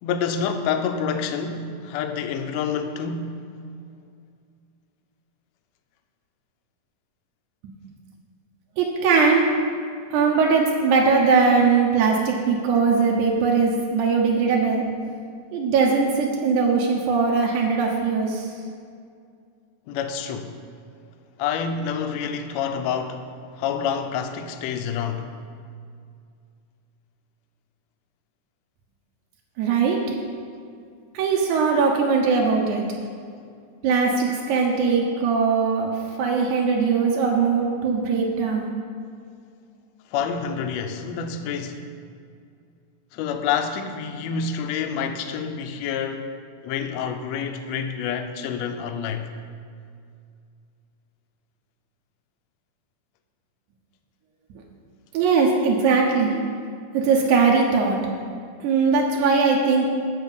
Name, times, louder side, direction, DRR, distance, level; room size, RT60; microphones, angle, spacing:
voice 1, 0.0-3.4 19.9-20.5 21.4-23.3 23.5-25.3 40.1-41.8 43.1-46.3 46.6-49.3, left 6 dB, 80° left, 1.6 m, -28 dB
voice 2, 8.8-9.5 10.1-14.8 15.5-18.5 29.6-30.0 31.1-32.9 33.8-35.9 36.2-38.7 54.5-54.6 55.1-56.4 56.9-58.0 58.6-59.9, right 5 dB, 75° right, 2.2 m, -20 dB
8.1 x 5.7 x 7.0 m
omnidirectional pair, 3.7 m